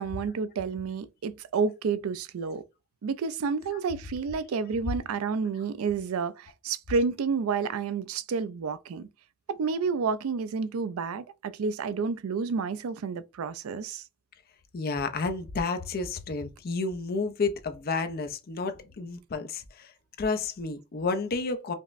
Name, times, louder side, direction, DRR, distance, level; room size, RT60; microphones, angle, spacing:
voice 1, 0.0-2.6 3.0-9.1 9.5-14.0, right 5 dB, 85° right, 0.4 m, -30 dB
voice 2, 14.7-19.9 20.2-21.7, left 4 dB, 45° left, 0.5 m, -31 dB
5.2 x 2.1 x 2.5 m
head